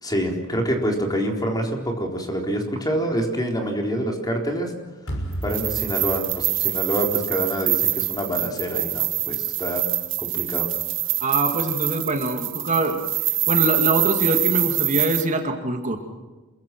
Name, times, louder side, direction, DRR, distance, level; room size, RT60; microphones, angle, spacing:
voice 1, 0.0-4.7 5.4-9.8 10.2-10.7, right 1 dB, 20° left, 2 dB, 4.0 m, -26 dB
sound 1, 5.1-8.2, equal, 65° left, 6.3 m, -35 dB
sound 2, 5.4-15.2, right 16 dB, 60° right, 1.9 m, -25 dB
voice 2, 11.2-13.0 13.5-16.0, right 2 dB, 35° right, 4 dB, 2.2 m, -23 dB
28.0 x 22.5 x 6.1 m, 1.2 s
head